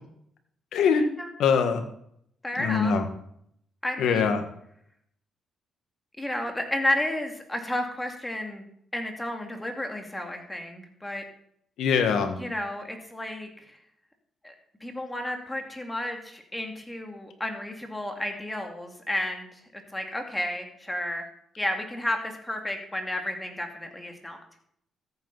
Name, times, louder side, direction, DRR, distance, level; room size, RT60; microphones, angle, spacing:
voice 1, 0.7-1.0 1.4-1.8 2.6-3.0 4.0-4.4 11.8-12.4, left 6 dB, 80° left, 7 dB, 1.7 m, -22 dB
voice 2, 2.4-2.9 3.8-4.4 6.2-8.6 8.9-11.2 12.4-13.8 14.4-14.5 14.8-21.3 21.6-24.4, left 1 dB, 10° left, 3 dB, 2.4 m, -32 dB
14.0 x 8.6 x 4.1 m, 0.69 s
cardioid pair, 85°, 0 cm